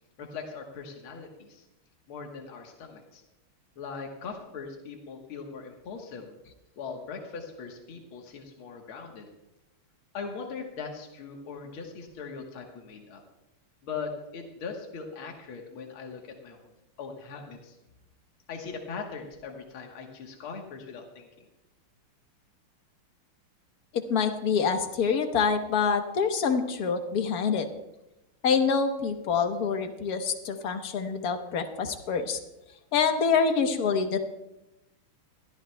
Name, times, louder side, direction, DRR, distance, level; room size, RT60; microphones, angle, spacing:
voice 1, 0.2-1.7 2.1-3.2 3.8-6.3 6.8-9.3 10.1-13.2 13.8-16.7 17.0-17.8 18.5-21.5, left 5 dB, 75° left, 2 dB, 2.1 m, -40 dB
voice 2, 23.9-27.7 28.4-32.4 32.9-34.2, left 5 dB, 50° left, 6 dB, 1.3 m, -26 dB
21.5 x 13.5 x 2.2 m, 0.92 s
omnidirectional pair, 2.4 m